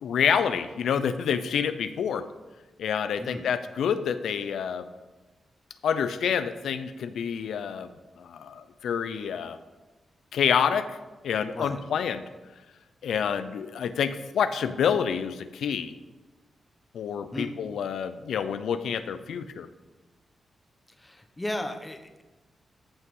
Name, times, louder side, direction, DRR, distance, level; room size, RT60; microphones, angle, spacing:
voice 1, 0.0-2.3 2.8-4.9 5.8-9.6 10.3-11.0 11.2-12.3 13.0-15.9 16.9-19.7, left 7 dB, 90° left, 11 dB, 0.5 m, -28 dB
voice 2, 21.0-22.2, left 1 dB, 15° left, 5 dB, 1.1 m, -35 dB
14.0 x 5.7 x 5.4 m, 1.2 s
cardioid pair, 100°, 0 cm